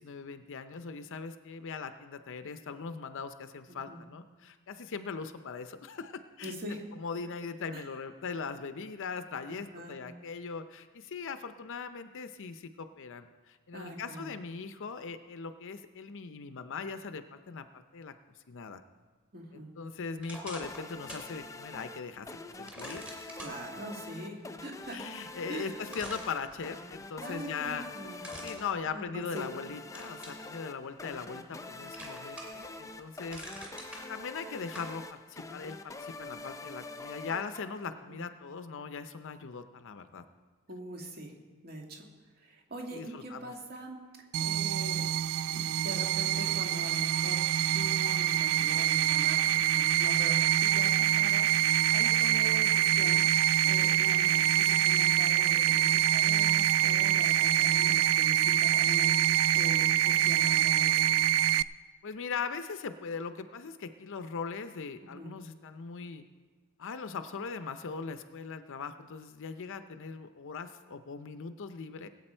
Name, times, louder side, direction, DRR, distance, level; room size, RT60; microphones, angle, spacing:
voice 1, 0.0-6.5 7.0-18.1 18.5-18.8 19.5-23.2 24.9-27.9 28.1-33.7 34.1-40.2 42.9-43.5 62.0-66.2 66.8-72.1, left 5 dB, 60° left, 10 dB, 0.6 m, -40 dB
voice 2, 3.7-4.0 6.4-6.8 7.7-7.8 9.5-10.0 13.7-14.4 19.3-19.7 23.4-25.0 25.5-25.8 27.2-28.2 28.9-29.5 31.3-31.6 38.1-38.2 40.7-41.3 41.6-42.1 42.4-44.0 44.4-45.1 45.5-47.4 47.7-59.2 59.5-61.1 65.0-65.3, right 1 dB, 45° right, 1 dB, 2.0 m, -43 dB
sound 1, 20.2-21.3 21.7-21.8 22.7-23.6 25.3-25.4 25.9-27.0 28.2-29.5 29.9-30.5 31.0-31.6 31.9-32.7 33.0-34.0 34.7-34.9, right 1 dB, 5° right, 2.4 m, -45 dB
sound 2, 20.6-38.1, left 2 dB, 15° left, 0.5 m, -45 dB
sound 3, 44.3-61.6, right 12 dB, 65° right, 0.3 m, -25 dB
20.5 x 8.2 x 4.4 m, 1.4 s
head